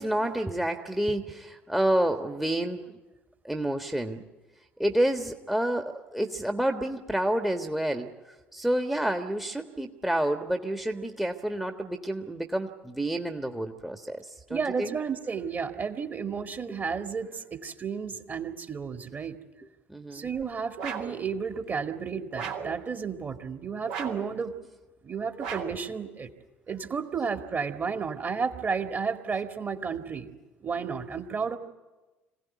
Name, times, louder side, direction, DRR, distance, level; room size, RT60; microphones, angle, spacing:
voice 1, 0.0-3.0 3.4-4.2 4.8-8.1 8.5-15.0 19.9-20.3, right 1 dB, 5° right, 4 dB, 1.5 m, -29 dB
voice 2, 14.5-19.4 20.1-24.5 25.0-26.3 26.7-30.3 30.6-31.6, right 5 dB, 30° right, 6 dB, 2.2 m, -32 dB
sound 1, 20.8-21.2 22.3-22.8 23.9-24.3 25.4-25.9, right 6 dB, 70° right, 2.4 m, -35 dB
25.5 x 17.0 x 9.5 m, 1.1 s
figure-of-eight pair, 55°, 6 cm